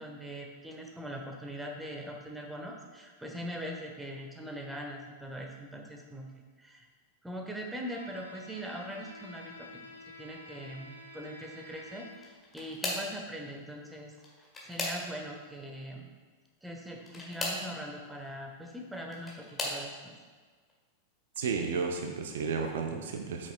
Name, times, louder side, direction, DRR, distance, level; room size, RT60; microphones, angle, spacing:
voice 1, 0.0-6.9 7.2-9.7 10.2-14.1 14.6-16.1 16.6-20.1, equal, 5° right, 1 dB, 1.0 m, -41 dB
Bowed string instrument, 7.8-12.5, left 2 dB, 85° left, 0.8 m, -50 dB
sound 1, 12.1-13.2 14.1-15.4 17.0-17.7 18.8-19.8 20.6-20.9 21.4-21.5 22.8-22.9, left 1 dB, 15° left, 1.7 m, -37 dB
voice 2, 21.4-23.5, right 5 dB, 60° right, 3 dB, 0.6 m, -32 dB
8.3 x 6.2 x 2.4 m, 1.4 s
figure-of-eight pair, 90°, 0 cm